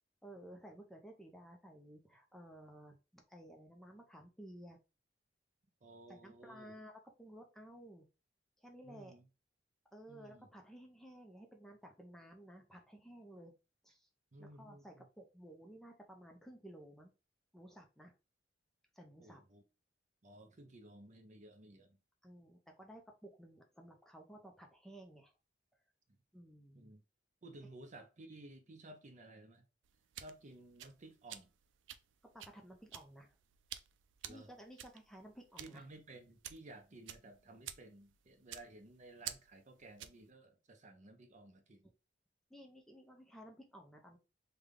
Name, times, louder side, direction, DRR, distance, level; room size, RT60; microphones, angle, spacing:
voice 1, 0.2-4.8 6.1-8.1 8.6-9.1 9.9-13.5 13.8-14.1 14.4-17.1 17.5-18.1 18.9-19.4 22.2-25.3 26.3-26.9 32.3-33.3 34.3-35.8 42.5-44.2, right 1 dB, ahead, 0.5 m, -55 dB
voice 2, 5.8-6.7 8.8-9.3 10.1-10.5 14.3-15.1 19.2-19.6 20.2-22.0 26.7-27.0 27.4-29.6 30.2-31.5 34.2-34.5 35.6-41.8, right 2 dB, 40° right, 0.6 m, -55 dB
sound 1, 29.8-40.3, right 11 dB, 85° right, 0.4 m, -51 dB
3.4 x 2.2 x 3.5 m
head